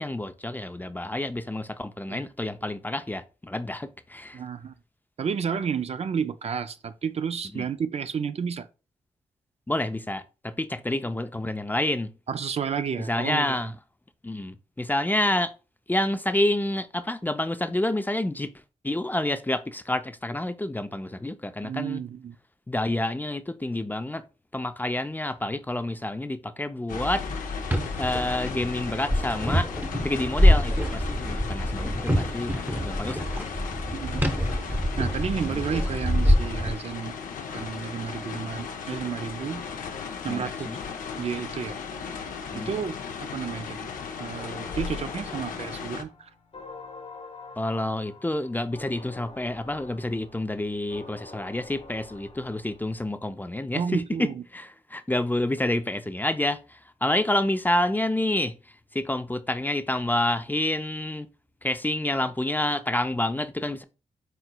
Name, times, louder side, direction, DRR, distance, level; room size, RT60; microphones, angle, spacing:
voice 1, 0.0-4.4 7.5-7.6 9.7-12.1 13.1-13.7 14.2-15.5 15.9-18.5 18.8-22.0 22.7-24.2 24.5-27.2 28.0-29.7 30.0-33.2 40.3-40.8 42.5-42.7 47.6-54.3 54.5-58.6 58.9-61.3 61.6-63.8, left 1 dB, 15° left, 0.4 m, -28 dB
voice 2, 4.3-4.8 5.2-8.7 12.3-13.6 21.6-22.4 33.9-34.3 35.0-37.1 37.5-39.6 40.2-40.7 41.2-41.8 42.5-43.0 43.2-43.9 44.2-46.3 53.7-54.4, right 7 dB, 50° right, 0.4 m, -31 dB
sound 1, 26.9-46.0, left 5 dB, 80° left, 0.6 m, -36 dB
sound 2, 27.6-36.7, equal, 15° right, 0.9 m, -25 dB
sound 3, 44.4-53.1, left 4 dB, 50° left, 1.0 m, -46 dB
4.3 x 3.8 x 2.2 m
supercardioid pair, 40°, 14 cm